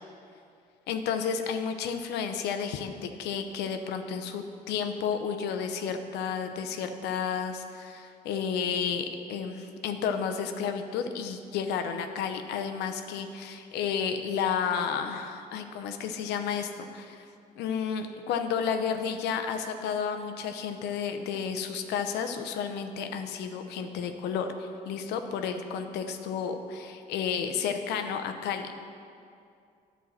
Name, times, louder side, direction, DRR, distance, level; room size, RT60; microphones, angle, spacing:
voice 1, 0.9-17.3 17.6-28.7, left 7 dB, 85° left, 7 dB, 0.7 m, -32 dB
9.5 x 4.6 x 7.4 m, 2.4 s
cardioid pair, 110°, 17 cm